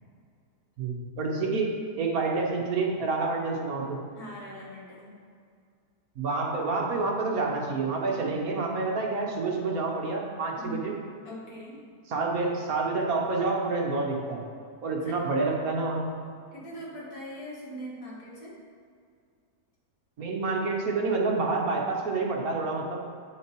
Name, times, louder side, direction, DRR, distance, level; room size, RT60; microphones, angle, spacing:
voice 1, 0.8-4.0 6.2-10.9 12.1-14.4 14.8-16.1 20.2-23.0, right 3 dB, 60° right, 0 dB, 1.4 m, -28 dB
voice 2, 4.2-5.2 10.6-10.9 11.2-11.8 15.0-15.2 16.5-18.5, equal, 65° left, -5 dB, 2.4 m, -41 dB
8.3 x 6.4 x 4.6 m, 2.2 s
omnidirectional pair, 1.8 m